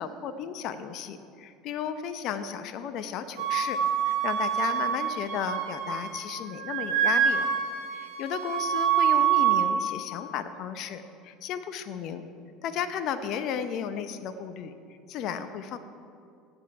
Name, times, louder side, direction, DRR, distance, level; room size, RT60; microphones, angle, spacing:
voice 1, 0.0-3.8 4.1-7.5 7.9-12.2 12.6-14.7 15.1-15.8, left 8 dB, 55° left, 10 dB, 0.8 m, -34 dB
Wind instrument woodwind instrument, 3.4-6.3 6.5-9.6, right 8 dB, 75° right, 3.0 m, -26 dB
18.5 x 8.1 x 4.8 m, 2.4 s
hypercardioid pair, 80°, 0 cm